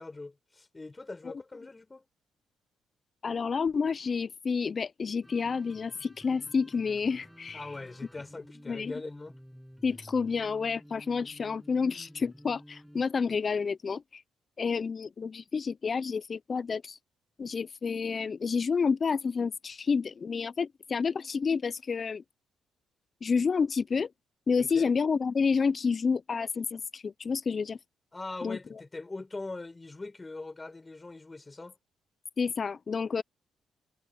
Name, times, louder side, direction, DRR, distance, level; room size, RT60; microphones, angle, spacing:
voice 1, 0.0-2.0 7.5-9.4 24.5-24.9 28.1-31.8, left 3 dB, 20° left, 7.6 m, -42 dB
voice 2, 3.2-7.7 8.7-8.9 9.8-14.2 14.6-17.0 17.4-22.2 23.2-24.1 24.5-27.8 28.4-28.8 32.4-33.2, left 5 dB, 40° left, 0.5 m, -29 dB
sound 1, 5.2-13.0, equal, ahead, 7.4 m, -52 dB
cardioid pair, 90°, 0 cm